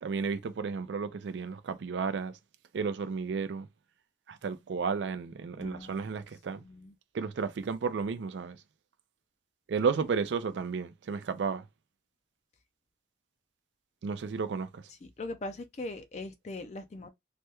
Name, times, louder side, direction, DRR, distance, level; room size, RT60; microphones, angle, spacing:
voice 1, 0.0-2.3 2.7-3.7 4.3-6.6 7.1-8.6 9.7-11.6 14.0-14.8, right 5 dB, 80° right, 0.4 m, -32 dB
voice 2, 5.6-6.0 6.6-6.9 15.2-17.1, left 2 dB, 40° left, 0.4 m, -40 dB
3.3 x 2.2 x 2.8 m
head